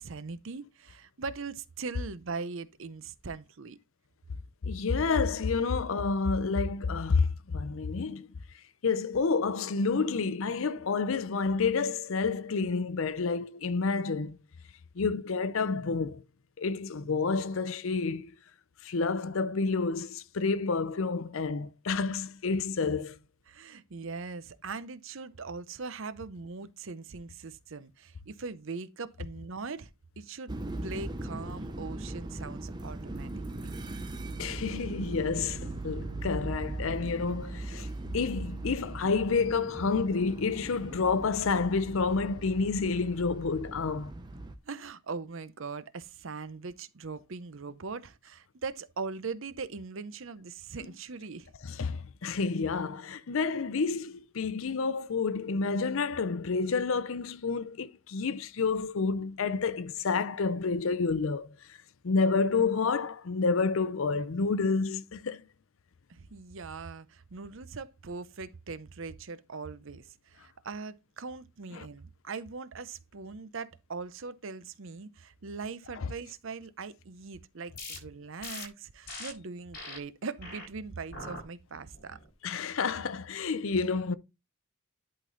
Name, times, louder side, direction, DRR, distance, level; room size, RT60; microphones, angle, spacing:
voice 1, 0.0-3.8 23.5-29.9 30.2-30.5 30.8-33.7 44.6-51.5 66.1-82.2, right 4 dB, 60° right, 0.7 m, -41 dB
voice 2, 4.6-8.3 8.8-14.4 15.0-16.2 16.6-18.3 18.8-23.1 34.4-37.9 38.1-44.1 51.7-61.5 62.0-65.4 71.8-71.9 82.4-84.1, left 4 dB, 65° left, 0.5 m, -29 dB
sound 1, 30.5-44.6, right 2 dB, 20° right, 0.7 m, -39 dB
sound 2, 77.7-78.0 78.4-78.7 79.1-79.3 79.7-80.0 80.4-80.7 81.1-81.4 81.9-82.3, left 2 dB, 45° left, 5.6 m, -41 dB
11.0 x 3.9 x 3.9 m
head